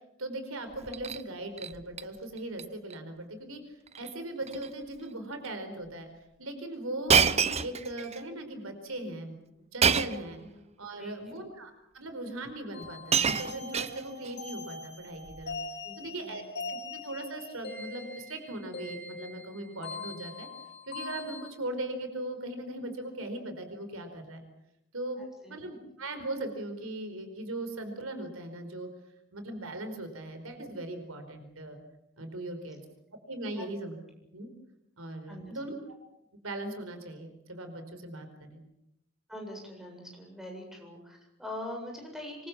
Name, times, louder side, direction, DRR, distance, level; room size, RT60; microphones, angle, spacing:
voice 1, 0.2-6.1 6.4-10.4 10.8-15.6 16.0-16.4 16.7-20.5 20.9-24.4 24.9-25.2 25.5-28.9 29.3-31.8 32.2-32.8 33.3-34.0 34.3-34.5 35.0-35.9 36.4-38.6, right 1 dB, 70° right, 8 dB, 4.6 m, -39 dB
Shatter, 0.7-1.2 1.6-2.0 2.4-2.6 2.9-3.0 3.9-4.1 4.4-4.7 5.4-5.5 7.1-8.2 9.8-10.3 11.3-11.4 12.4-12.5 12.8-14.3 15.3-15.5, right 6 dB, 30° right, 0.9 m, -27 dB
voice 2, 11.0-11.4 15.8-16.7 25.2-25.6 33.6-33.7 35.3-35.6 39.3-42.5, left 1 dB, ahead, 1 dB, 7.9 m, -43 dB
sound 1, 12.7-21.5, left 3 dB, 55° left, 6.0 m, -42 dB
26.5 x 24.0 x 7.3 m, 0.82 s
head